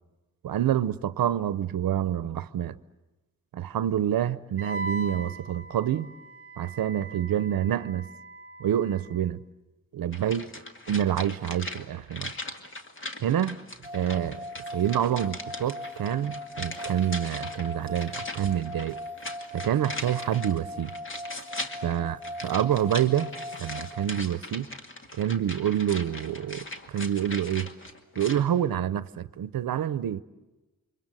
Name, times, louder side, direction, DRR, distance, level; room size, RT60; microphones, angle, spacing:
voice 1, 0.4-2.7 3.5-6.1 6.6-8.1 8.6-9.4 9.9-10.5 10.9-12.3 13.2-13.6 13.9-14.4 14.7-19.0 19.5-20.9 21.8-23.3 23.6-24.7 25.1-27.7 28.2-30.2, right 10 dB, 80° right, 0.8 m, -27 dB
Wind instrument woodwind instrument, 4.6-9.2, right 2 dB, 40° right, 1.0 m, -40 dB
sound 1, 10.1-28.5 28.8-28.9, left 2 dB, 35° left, 2.2 m, -40 dB
sound 2, 13.8-24.1, equal, 5° right, 6.2 m, -40 dB
28.5 x 24.5 x 7.8 m
wide cardioid pair, 120°, 35 cm